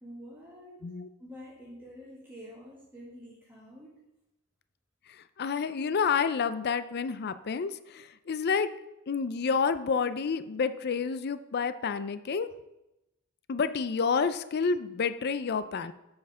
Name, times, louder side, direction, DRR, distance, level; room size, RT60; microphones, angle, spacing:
voice 1, 0.0-0.9 1.2-4.0, equal, 10° right, -6 dB, 1.6 m, -47 dB
voice 2, 5.4-8.7 9.1-12.5 13.5-15.9, left 5 dB, 50° left, 12 dB, 0.4 m, -29 dB
8.5 x 5.7 x 5.5 m, 0.92 s
head